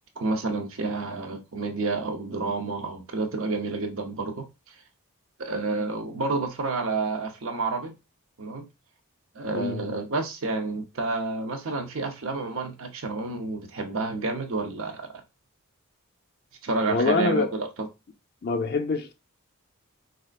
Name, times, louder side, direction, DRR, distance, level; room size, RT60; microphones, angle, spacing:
voice 1, 0.2-4.4 5.4-7.9 8.4-8.6 9.4-15.1 16.6-17.9, right 3 dB, 60° right, 0.7 m, -29 dB
voice 2, 9.5-9.9 16.9-17.5 18.4-19.1, left 3 dB, 45° left, 0.4 m, -25 dB
4.2 x 2.4 x 2.3 m
head